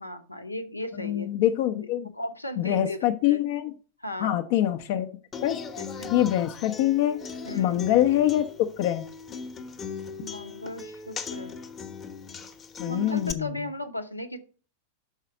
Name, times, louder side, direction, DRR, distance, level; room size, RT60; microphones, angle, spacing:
voice 1, 0.0-1.3 2.1-3.4 4.0-4.4 5.8-6.1 7.4-7.8 10.2-11.5 12.9-14.4, left 1 dB, 85° left, 8 dB, 0.9 m, -36 dB
voice 2, 1.0-2.1 2.6-3.7 4.2-5.1 5.4-5.6 6.1-7.2 7.5-8.4 8.8-9.0 12.8-13.5, left 12 dB, 50° left, 6 dB, 0.7 m, -24 dB
Human voice / Acoustic guitar, 5.3-13.3, left 5 dB, 25° left, 1.0 m, -39 dB
6.5 x 4.8 x 6.2 m, 0.38 s
figure-of-eight pair, 90°, 0 cm